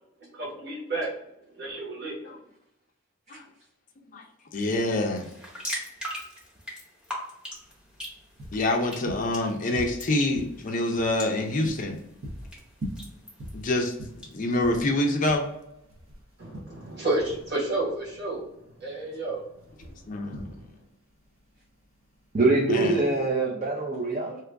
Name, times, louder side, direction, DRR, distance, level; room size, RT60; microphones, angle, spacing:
voice 1, 0.3-1.1 1.5-2.3 16.4-18.4 18.8-19.4, right 2 dB, 50° right, -4 dB, 1.4 m, -30 dB
voice 2, 4.5-5.3 8.5-12.0 13.5-13.9 14.3-15.5 20.1-20.6 22.7-23.0, left 1 dB, 40° left, 3 dB, 0.4 m, -26 dB
sound 1, 5.2-14.3, equal, 5° right, 0.8 m, -41 dB
sound 2, 7.5-23.2, equal, 75° right, 0.9 m, -43 dB
voice 3, 22.3-24.4, right 3 dB, 35° right, -1 dB, 0.5 m, -24 dB
2.9 x 2.4 x 3.4 m, 0.80 s
head